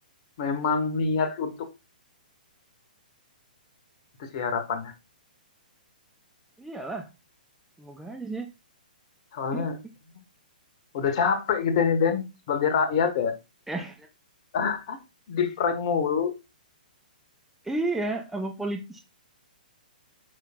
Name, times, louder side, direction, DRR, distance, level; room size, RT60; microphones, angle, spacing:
voice 1, 0.4-1.5 4.2-4.9 9.3-9.8 10.9-13.3 14.5-15.0 15.3-16.3, left 6 dB, 40° left, 1.3 m, -25 dB
voice 2, 6.6-7.1 7.8-8.5 9.5-9.7 13.7-14.1 17.6-19.0, right 2 dB, 5° right, 0.6 m, -32 dB
8.1 x 5.6 x 2.3 m
figure-of-eight pair, 115°, 5 cm